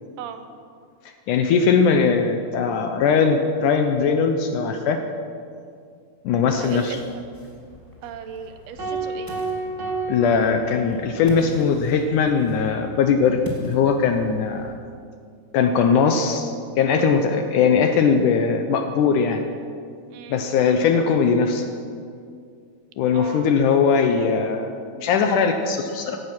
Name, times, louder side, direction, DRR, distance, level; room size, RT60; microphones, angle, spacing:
voice 1, 1.3-5.0 6.2-7.0 10.1-14.7 15.5-19.4 20.3-21.7 23.0-26.2, left 5 dB, 75° left, 6 dB, 1.9 m, -20 dB
voice 2, 6.5-7.2 8.0-9.3 20.1-20.5 23.1-23.6, right 8 dB, 85° right, 8 dB, 2.9 m, -37 dB
Ocean, 6.6-14.8, left 1 dB, 10° left, 1.6 m, -42 dB
sound 1, 8.8-11.3, right 3 dB, 30° right, 1.4 m, -30 dB
16.0 x 13.0 x 6.1 m, 2.3 s
omnidirectional pair, 4.5 m